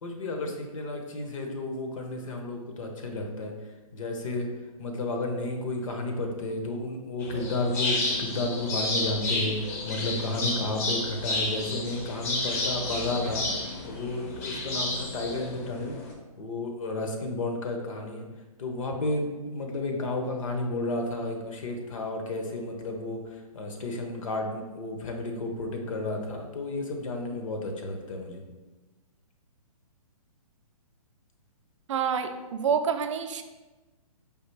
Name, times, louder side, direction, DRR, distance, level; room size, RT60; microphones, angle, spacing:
voice 1, 0.0-3.5 3.9-4.5 4.8-13.4 13.8-16.0 16.4-18.3 18.6-23.2 23.5-28.4, left 2 dB, 60° left, 2 dB, 0.9 m, -32 dB
sound 1, 7.2-16.1, left 2 dB, 25° left, 0.6 m, -31 dB
voice 2, 31.9-33.4, right 7 dB, 55° right, 7 dB, 0.4 m, -27 dB
4.8 x 2.5 x 3.3 m, 1.2 s
hypercardioid pair, 155°, 19 cm